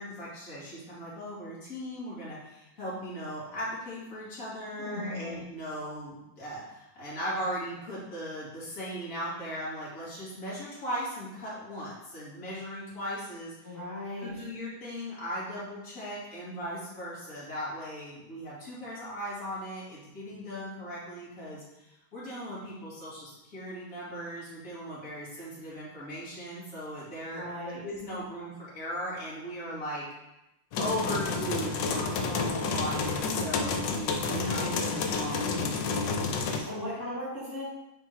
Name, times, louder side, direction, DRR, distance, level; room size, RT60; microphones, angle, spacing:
voice 1, 0.0-13.7 14.2-30.0 30.8-34.6 34.9-36.7, equal, 40° left, -9 dB, 2.7 m, -38 dB
voice 2, 4.8-5.4 13.6-14.4 27.3-27.9 34.3-35.0 36.6-37.6, left 1 dB, 10° left, -13 dB, 2.2 m, -37 dB
sound 1, 30.7-36.6, left 4 dB, 70° left, 1.2 m, -30 dB
5.6 x 4.3 x 4.6 m, 0.92 s
omnidirectional pair, 2.3 m